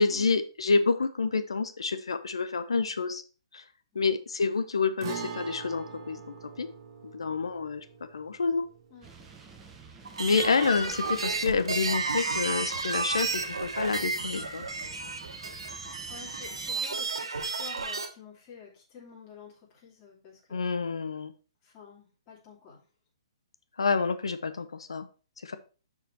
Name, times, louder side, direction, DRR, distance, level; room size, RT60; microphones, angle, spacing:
voice 1, 0.0-3.2 3.5-3.6 3.9-6.7 7.1-7.8 8.1-8.6 10.2-14.6 20.5-21.3 23.8-25.1 25.4-25.6, left 4 dB, 80° left, 10 dB, 0.8 m, -28 dB
Guitar, 5.0-12.6 12.9-13.0 15.0-15.1, right 6 dB, 45° right, 1.5 m, -44 dB
sound 1, 9.0-16.7, right 4 dB, 15° right, 1.2 m, -50 dB
sound 2, 10.0-18.1, right 3 dB, 80° right, 1.4 m, -32 dB
voice 2, 15.2-15.8 16.1-20.6 21.6-22.8, left 5 dB, 30° left, -5 dB, 2.7 m, -50 dB
6.7 x 5.0 x 4.6 m, 0.36 s
hypercardioid pair, 135°, 3 cm